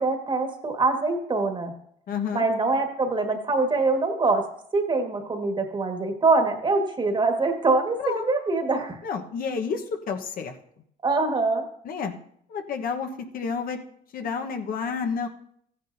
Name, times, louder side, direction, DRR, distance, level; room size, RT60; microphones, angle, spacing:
voice 1, 0.0-1.7 2.3-4.4 4.7-9.0 11.0-11.6, right 3 dB, 25° right, 4 dB, 1.7 m, -24 dB
voice 2, 2.1-2.4 8.0-8.2 9.0-10.6 11.8-12.1 12.5-13.8 14.1-15.3, left 5 dB, 60° left, 5 dB, 1.2 m, -30 dB
14.5 x 10.0 x 2.7 m, 0.68 s
cardioid pair, 110°, 17 cm